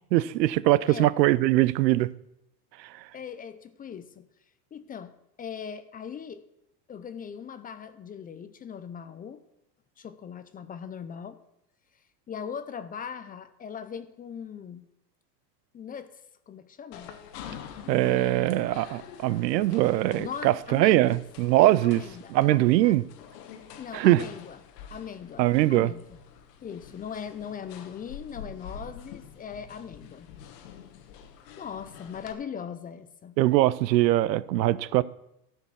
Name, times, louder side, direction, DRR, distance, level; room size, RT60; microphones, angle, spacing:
voice 1, 0.1-2.1 17.9-22.0 22.3-23.0 23.9-24.2 25.4-25.9 33.4-35.0, right 16 dB, 85° right, 0.6 m, -22 dB
voice 2, 3.1-4.3 4.7-6.4 6.9-9.4 10.0-11.4 12.3-14.9 15.7-16.2 16.5-17.2 20.2-21.2 21.8-23.0 23.8-24.6 24.9-26.2 26.6-30.3 31.6-33.3, left 7 dB, 20° left, 0.4 m, -40 dB
sound 1, 16.9-32.3, left 8 dB, 70° left, 1.3 m, -46 dB
13.0 x 4.6 x 6.2 m
hypercardioid pair, 105°, 50 cm